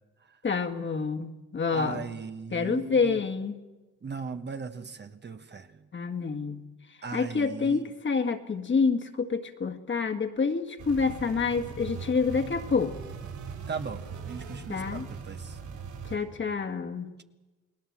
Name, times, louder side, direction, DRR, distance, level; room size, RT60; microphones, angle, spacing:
voice 1, 0.4-2.0 2.5-3.6 5.9-6.6 7.1-12.9 14.7-15.0 16.0-17.1, left 5 dB, 40° left, 6 dB, 1.8 m, -28 dB
voice 2, 1.7-3.2 4.0-5.9 7.0-7.9 13.7-15.6, right 5 dB, 35° right, 8 dB, 1.3 m, -38 dB
sound 1, 10.8-16.2, right 5 dB, 70° right, 7.4 m, -40 dB
29.5 x 19.0 x 7.4 m, 1.2 s
cardioid pair, 90°, 30 cm